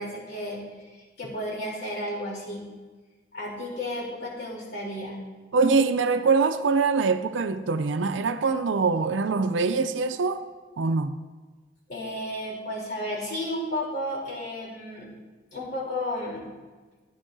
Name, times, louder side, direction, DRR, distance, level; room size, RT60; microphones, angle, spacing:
voice 1, 0.0-2.6 3.3-5.2 11.9-15.1 15.5-16.5, left 1 dB, 60° left, 3.4 m, -33 dB
voice 2, 5.5-10.4 10.8-11.1, right 4 dB, 85° right, 0.5 m, -23 dB
16.0 x 10.0 x 2.7 m
head